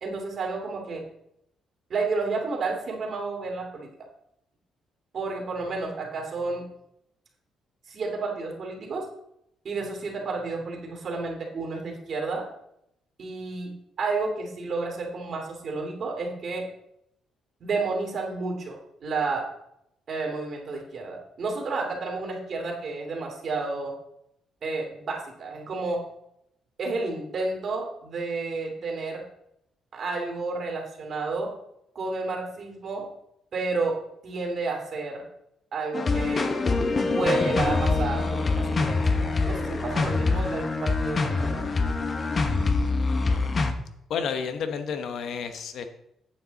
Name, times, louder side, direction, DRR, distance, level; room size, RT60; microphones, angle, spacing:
voice 1, 0.0-1.1 1.9-3.9 5.1-6.6 7.9-9.1 9.6-12.5 13.2-13.7 14.0-16.7 17.6-19.5 20.1-23.9 24.6-26.0 26.8-29.2 29.9-31.5 31.9-33.1 33.5-34.0 34.2-35.2 35.7-36.5 37.1-41.6, right 3 dB, 55° right, 0 dB, 2.5 m, -31 dB
sound 1, 35.9-43.7, left 3 dB, 40° left, 1.1 m, -25 dB
voice 2, 44.1-45.8, left 6 dB, 70° left, 8 dB, 1.0 m, -30 dB
9.0 x 7.6 x 4.0 m, 0.78 s
cardioid pair, 90°, 0 cm